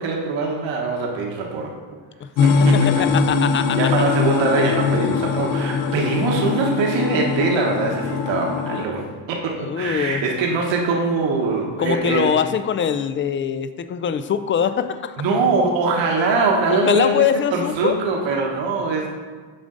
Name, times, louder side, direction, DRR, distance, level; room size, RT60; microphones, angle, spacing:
voice 1, 0.0-1.7 2.4-3.0 3.4-3.5 3.8-12.3 15.2-19.1, right 3 dB, 70° right, 0 dB, 1.3 m, -22 dB
sound 1, 2.4-8.8, left 5 dB, 70° left, 0.8 m, -21 dB
voice 2, 2.7-3.8 9.6-10.3 11.8-15.2 16.8-18.0, left 8 dB, 30° left, 11 dB, 0.3 m, -22 dB
7.0 x 5.1 x 3.8 m, 1.4 s
supercardioid pair, 85°, 47 cm